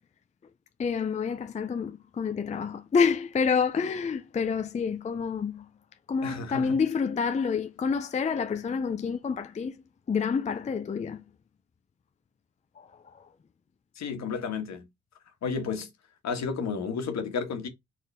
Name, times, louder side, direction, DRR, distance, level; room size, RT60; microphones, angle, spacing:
voice 1, 0.8-5.7 6.1-11.2 12.8-13.3, left 5 dB, 25° left, 0.5 m, -28 dB
voice 2, 6.2-6.8 13.9-14.9 15.4-15.9 16.2-17.7, left 5 dB, 60° left, 1.5 m, -32 dB
4.3 x 3.6 x 3.4 m
cardioid pair, 90°, 30 cm